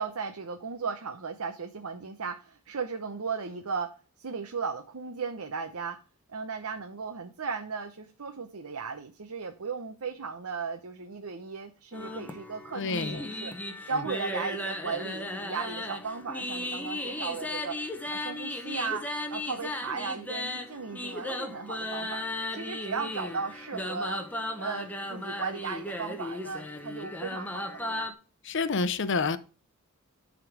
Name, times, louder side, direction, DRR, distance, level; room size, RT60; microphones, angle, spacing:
voice 1, 0.0-3.9 4.2-6.0 6.3-13.5 13.9-17.8 18.1-22.2 22.5-24.3 24.6-28.1, right 5 dB, 80° right, 0.8 m, -36 dB
sound 1, 11.9-28.1, left 1 dB, 5° left, 0.9 m, -36 dB
voice 2, 12.7-13.2 28.4-29.4, left 4 dB, 55° left, 0.7 m, -28 dB
11.5 x 3.8 x 4.7 m
head